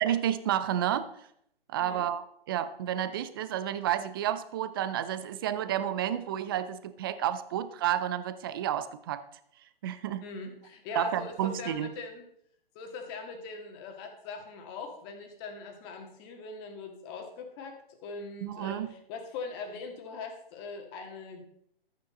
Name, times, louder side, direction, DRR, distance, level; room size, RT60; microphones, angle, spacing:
voice 1, 0.0-1.1 1.7-9.2 9.8-10.2 10.9-11.9 18.4-18.9, right 11 dB, 25° right, 14 dB, 0.5 m, -30 dB
voice 2, 10.2-12.2 12.8-21.4, left 4 dB, 25° left, 4 dB, 1.9 m, -41 dB
13.0 x 9.0 x 3.9 m, 0.71 s
hypercardioid pair, 140°, 30 cm